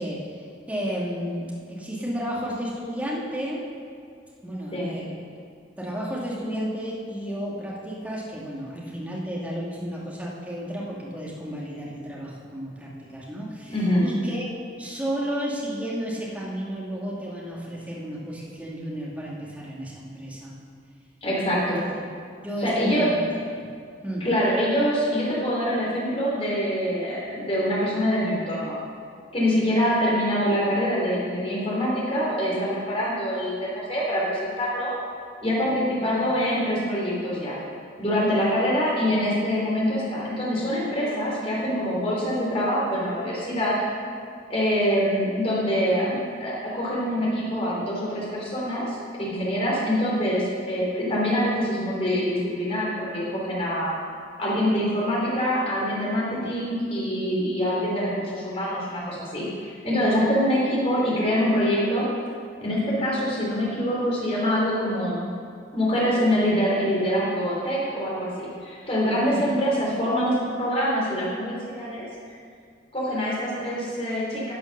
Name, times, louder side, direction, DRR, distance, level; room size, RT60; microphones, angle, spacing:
voice 1, 0.0-3.6 4.4-5.4 5.8-14.5 14.8-20.6 21.6-21.8 22.4-23.2 23.6-23.7 24.0-24.3 69.2-69.5, equal, 10° right, -5 dB, 2.0 m, -32 dB
voice 2, 13.7-14.1 21.2-21.8 22.6-23.1 24.2-28.8 29.3-34.9 35.4-37.6 38.0-43.8 44.5-53.9 54.4-62.1 62.6-65.2 65.7-72.4 72.9-74.5, equal, 30° left, -6 dB, 3.3 m, -25 dB
11.5 x 6.9 x 6.6 m, 2.2 s
head